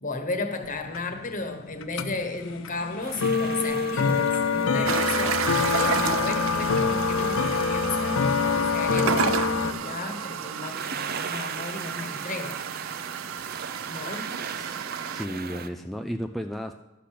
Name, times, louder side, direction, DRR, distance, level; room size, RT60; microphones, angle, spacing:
voice 1, 0.0-5.5 5.7-8.2 8.5-12.6 13.4-13.5 13.9-14.3, left 3 dB, 40° left, 6 dB, 1.3 m, -34 dB
sound 1, 0.6-9.7, left 5 dB, 90° left, 0.6 m, -25 dB
sound 2, 3.0-15.7, right 5 dB, 50° right, 0.7 m, -39 dB
sound 3, 4.9-15.3, right 8 dB, 90° right, 0.4 m, -32 dB
voice 2, 14.5-14.8 15.1-16.7, equal, ahead, 5 dB, 0.4 m, -33 dB
11.5 x 5.9 x 8.4 m, 1.0 s
head